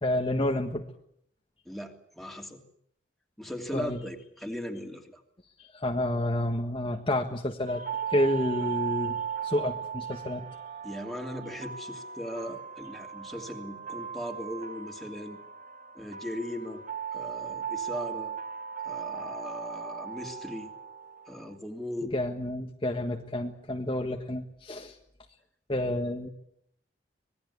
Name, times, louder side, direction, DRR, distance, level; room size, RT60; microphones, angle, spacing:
voice 1, 0.0-0.8 3.7-4.0 5.6-10.5 22.0-24.9 25.7-26.3, left 1 dB, 30° left, 2 dB, 1.6 m, -30 dB
voice 2, 1.7-2.6 3.4-5.2 10.8-15.4 15.9-16.8 17.1-18.3 18.8-20.7 21.3-22.1, equal, ahead, 2 dB, 2.9 m, -38 dB
sound 1, 7.7-21.6, right 7 dB, 40° right, 1.6 m, -37 dB
26.0 x 20.0 x 8.4 m, 0.70 s
head